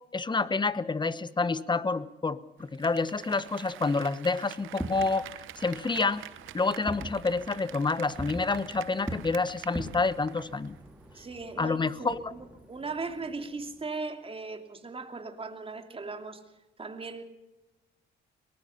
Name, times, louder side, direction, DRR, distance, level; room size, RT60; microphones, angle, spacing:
voice 1, 0.1-5.2 5.6-6.2 6.5-10.8 11.6-12.3, left 3 dB, 20° left, 15 dB, 1.1 m, -28 dB
Applause, 2.6-10.8 11.1-11.2, right 14 dB, 80° right, 0.9 m, -46 dB
Fireworks, 4.6-13.9, right 1 dB, 5° right, 3.5 m, -43 dB
voice 2, 11.1-16.4 16.8-17.2, right 3 dB, 30° right, 6 dB, 2.9 m, -38 dB
23.0 x 19.5 x 5.8 m, 1.0 s
cardioid pair, 90°, 20 cm